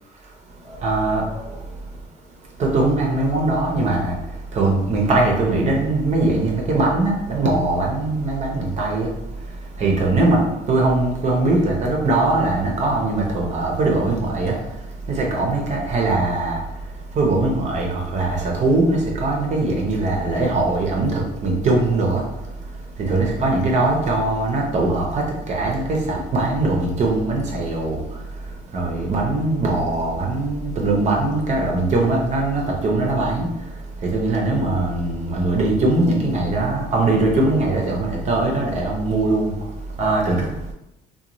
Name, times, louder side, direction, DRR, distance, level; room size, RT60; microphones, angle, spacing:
voice 1, 0.2-2.0 2.6-40.7, right 2 dB, 40° right, -1 dB, 0.6 m, -21 dB
2.5 x 2.3 x 2.9 m, 0.88 s
cardioid pair, 110°, 17 cm